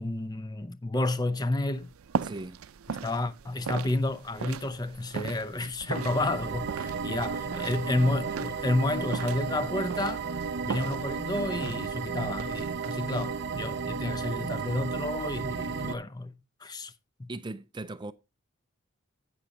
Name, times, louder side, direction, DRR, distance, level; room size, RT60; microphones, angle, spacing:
voice 1, 0.0-1.9 3.0-10.2 10.6-16.3 16.6-16.9 17.2-17.3, left 2 dB, 20° left, 0.6 m, -30 dB
sound 1, 1.7-15.8, right 6 dB, 90° right, 0.5 m, -40 dB
voice 2, 2.2-2.6 17.3-18.1, right 2 dB, 20° right, 0.4 m, -38 dB
sound 2, 5.9-15.9, right 5 dB, 55° right, 0.7 m, -33 dB
11.5 x 8.6 x 2.8 m
head